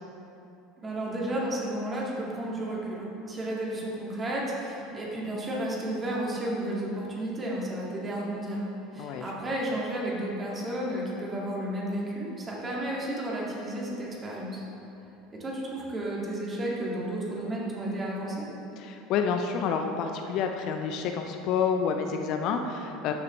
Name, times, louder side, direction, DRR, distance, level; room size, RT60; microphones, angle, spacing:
voice 1, 0.8-8.7 8.9-14.6 15.3-18.5, right 1 dB, 25° right, -4 dB, 2.2 m, -32 dB
voice 2, 9.0-9.3 18.8-23.1, left 6 dB, 50° left, 5 dB, 0.5 m, -29 dB
12.5 x 6.6 x 3.3 m, 2.8 s
figure-of-eight pair, 70°, 0 cm